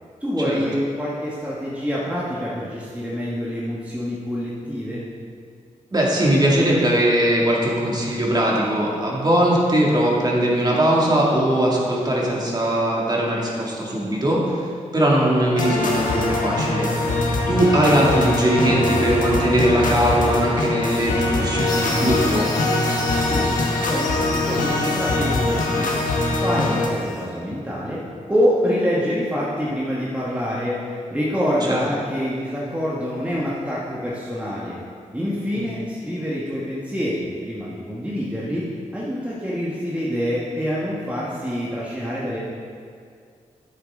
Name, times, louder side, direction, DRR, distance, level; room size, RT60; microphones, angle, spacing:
voice 1, 0.2-5.0 23.2-23.5 23.8-26.0 26.4-28.0 28.3-34.8 35.1-42.4, equal, 10° right, -7 dB, 1.6 m, -26 dB
voice 2, 5.9-14.7 14.9-16.9 17.5-22.5 31.7-31.8 35.6-35.7, right 1 dB, 30° right, -4 dB, 2.3 m, -20 dB
sound 1, 15.6-26.9, left 2 dB, 80° left, 1.2 m, -22 dB
sound 2, 21.6-27.3, left 2 dB, 30° left, 1.5 m, -35 dB
9.5 x 8.2 x 3.8 m, 2.2 s
cardioid pair, 60°, 14 cm